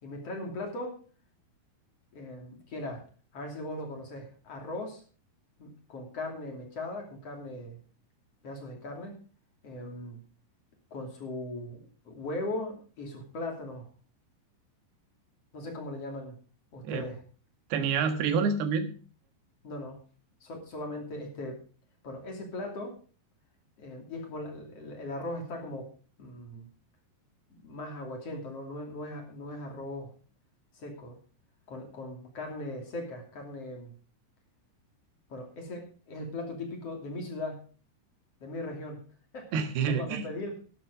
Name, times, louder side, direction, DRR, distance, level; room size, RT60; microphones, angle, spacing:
voice 1, 0.0-1.0 2.1-3.1 3.3-5.0 5.6-7.8 8.4-9.2 9.6-10.2 10.9-11.8 12.0-13.9 15.5-16.4 16.7-17.2 19.6-20.0 20.4-21.6 22.0-23.0 23.8-25.9 26.2-26.7 27.5-30.1 30.7-31.2 31.7-33.9 35.3-37.6 38.4-39.0 39.3-39.5 39.9-40.6, left 1 dB, 35° left, 2 dB, 3.2 m, -39 dB
voice 2, 17.7-18.9 39.5-40.2, right 6 dB, 65° right, 8 dB, 3.2 m, -28 dB
12.0 x 11.0 x 4.9 m, 0.38 s
omnidirectional pair, 5.5 m